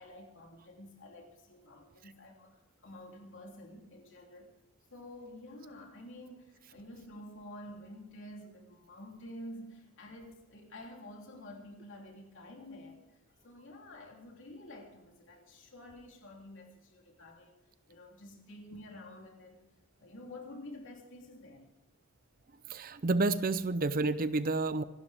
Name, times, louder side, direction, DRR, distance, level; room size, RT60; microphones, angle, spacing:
voice 1, 0.0-4.5 4.9-21.7, left 1 dB, 60° left, 0 dB, 3.3 m, -50 dB
voice 2, 22.7-24.8, right 3 dB, 40° right, 14 dB, 0.6 m, -30 dB
26.0 x 12.5 x 3.5 m, 1.0 s
head